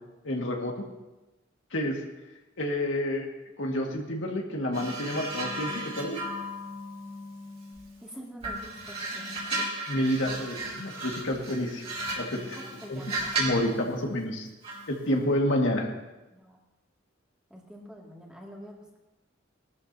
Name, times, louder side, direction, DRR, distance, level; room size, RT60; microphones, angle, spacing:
voice 1, 0.2-0.7 1.7-2.0 2.6-3.3 3.6-6.2 9.9-11.8 12.2-12.6 12.9-13.0 13.4-14.5 14.9-15.9, left 1 dB, 75° left, 0 dB, 1.9 m, -29 dB
sound 1, 4.7-8.0 8.4-13.7 14.6-14.9, right 2 dB, 35° right, 3.7 m, -35 dB
voice 2, 8.0-9.2 12.6-14.0 16.3-16.6 17.5-19.0, equal, 5° right, -3 dB, 2.3 m, -46 dB
20.0 x 13.0 x 2.8 m, 1.1 s
head